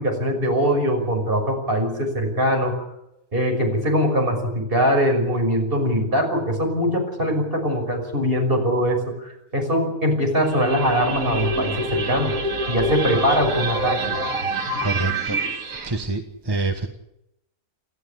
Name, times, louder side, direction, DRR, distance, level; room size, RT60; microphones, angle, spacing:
voice 1, 0.0-2.7 3.3-12.3 12.7-14.1, equal, 40° right, 2 dB, 6.3 m, -22 dB
sound 1, 10.4-15.9, right 2 dB, 70° right, 2.2 m, -26 dB
voice 2, 14.8-15.4 15.8-16.9, right 3 dB, 20° right, 5 dB, 1.4 m, -26 dB
29.5 x 12.0 x 10.0 m, 0.84 s
omnidirectional pair, 1.5 m